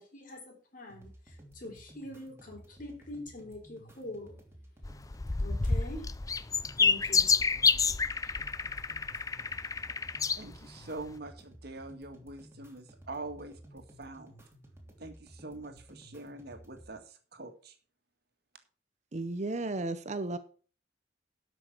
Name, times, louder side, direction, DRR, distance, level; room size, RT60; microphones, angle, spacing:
voice 1, 0.0-4.4 5.4-6.0 6.8-7.3, left 1 dB, 45° left, 2 dB, 4.0 m, -44 dB
sound 1, 0.9-16.9, equal, 15° right, 3.1 m, -55 dB
sound 2, 4.8-10.4 11.0-11.1, left 5 dB, 20° left, 0.4 m, -28 dB
voice 2, 10.3-14.3 15.0-17.8, right 2 dB, 60° right, 6 dB, 2.0 m, -44 dB
voice 3, 19.1-20.4, right 2 dB, 40° right, 12 dB, 0.7 m, -34 dB
12.5 x 6.2 x 6.0 m, 0.39 s
head